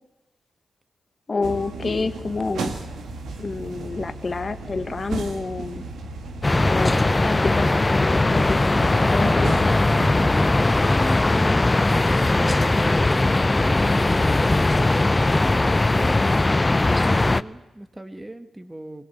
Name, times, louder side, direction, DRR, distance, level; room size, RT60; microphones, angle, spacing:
voice 1, 1.3-2.8 3.4-5.8 6.7-8.8 9.1-9.7, left 3 dB, 45° left, 10 dB, 1.1 m, -28 dB
sound 1, 1.4-10.5, right 3 dB, 80° right, 2.1 m, -34 dB
sound 2, 4.8-9.8, right 3 dB, 65° right, 1.8 m, -44 dB
sound 3, 6.4-17.4, left 2 dB, 30° left, 0.7 m, -19 dB
voice 2, 10.3-19.0, right 1 dB, 15° right, 9 dB, 1.9 m, -36 dB
20.0 x 18.0 x 8.1 m, 1.0 s
supercardioid pair, 45°, 0 cm